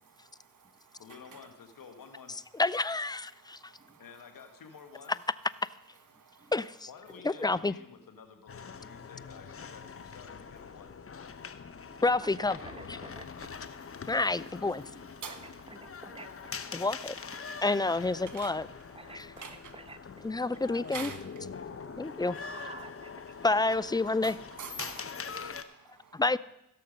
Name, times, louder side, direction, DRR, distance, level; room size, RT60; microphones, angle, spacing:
voice 1, 0.2-1.0 3.3-4.0 6.1-6.5 13.9-14.1 15.2-15.4 17.4-17.6 18.3-18.5 19.0-19.7 20.5-20.6 20.9-21.2 21.6-22.2 24.2-25.1 25.4-26.2, right 6 dB, 60° right, 8 dB, 1.5 m, -47 dB
voice 2, 1.0-2.3 4.0-5.2 6.9-11.0, left 6 dB, 70° left, 6 dB, 1.6 m, -51 dB
voice 3, 2.6-3.6 6.5-6.7 7.2-7.7 12.0-12.6 12.9-13.0 14.1-14.8 16.7-17.1 17.6-18.7 19.1-19.3 20.2-21.1 22.0-22.4 23.4-24.4 26.1-26.4, left 3 dB, 10° left, 18 dB, 0.4 m, -28 dB
sound 1, 8.5-25.6, left 5 dB, 40° left, 0.9 m, -44 dB
voice 4, 11.9-13.3 14.7-16.6 17.4-17.6 18.9-20.0 22.4-23.6, right 2 dB, 15° right, 10 dB, 1.0 m, -50 dB
16.0 x 6.6 x 5.3 m, 0.84 s
supercardioid pair, 45°, 35 cm